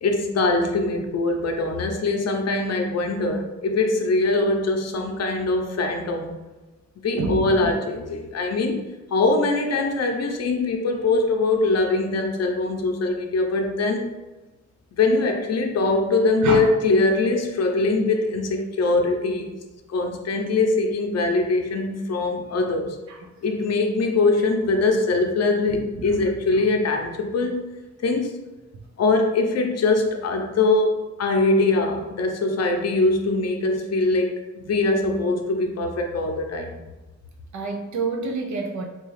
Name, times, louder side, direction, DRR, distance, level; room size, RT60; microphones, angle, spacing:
voice 1, 0.0-6.3 7.0-8.8 9.1-14.1 15.0-19.5 19.9-23.0 23.4-27.7 28.0-28.4 29.0-36.8, left 3 dB, 60° left, 3 dB, 0.6 m, -22 dB
voice 2, 7.2-7.7 16.4-16.7 23.1-23.2 25.7-26.1 37.5-38.8, right 3 dB, 75° right, 1 dB, 0.5 m, -28 dB
4.0 x 2.3 x 3.2 m, 1.1 s
wide cardioid pair, 105°, 29 cm